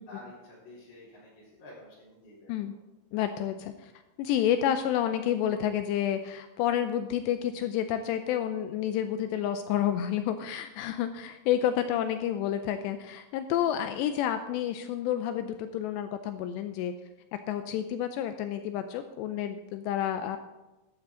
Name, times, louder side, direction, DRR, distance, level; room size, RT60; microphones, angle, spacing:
voice 1, 0.1-2.5 13.6-13.9, left 1 dB, 60° left, -12 dB, 6.0 m, -50 dB
voice 2, 3.1-3.9 4.2-16.9 17.5-20.4, left 10 dB, 85° left, 9 dB, 2.6 m, -29 dB
12.0 x 12.0 x 3.8 m, 1.0 s
omnidirectional pair, 5.4 m